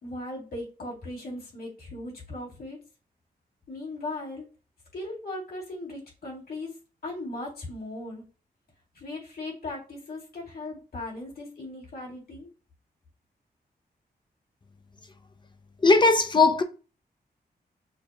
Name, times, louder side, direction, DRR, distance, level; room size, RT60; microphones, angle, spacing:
voice 1, 0.0-2.8 3.7-4.4 4.9-6.7 7.0-8.2 8.9-12.5, left 2 dB, 70° left, 2.4 m, -38 dB
voice 2, 15.8-16.6, left 3 dB, 30° left, 0.5 m, -18 dB
6.4 x 2.3 x 2.8 m
wide cardioid pair, 125°, 17 cm